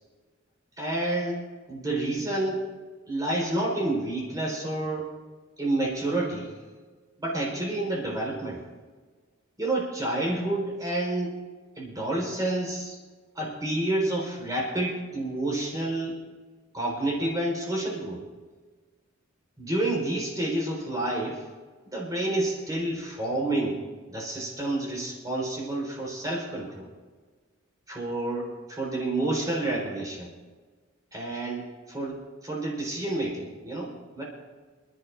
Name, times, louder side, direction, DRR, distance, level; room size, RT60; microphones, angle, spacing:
voice 1, 0.8-1.4 1.7-2.6 3.1-5.1 5.6-6.5 7.2-8.6 9.6-11.4 11.8-13.0 13.3-16.2 16.7-18.2 19.6-21.4 21.9-23.8 24.1-26.9 27.9-30.3 31.1-34.2, right 2 dB, 20° right, -3 dB, 4.0 m, -29 dB
27.5 x 11.5 x 2.5 m, 1.4 s
head